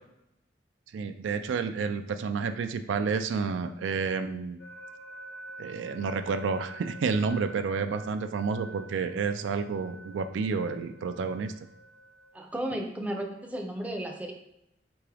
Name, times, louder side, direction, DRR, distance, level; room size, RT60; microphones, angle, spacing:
voice 1, 0.9-4.6 5.6-11.5, right 5 dB, 90° right, 9 dB, 0.3 m, -30 dB
sound 1, 4.6-12.6, right 2 dB, 85° left, 1.0 m, -48 dB
voice 2, 12.3-14.3, right 1 dB, 10° right, 2 dB, 0.5 m, -34 dB
3.8 x 3.5 x 3.3 m, 0.83 s
head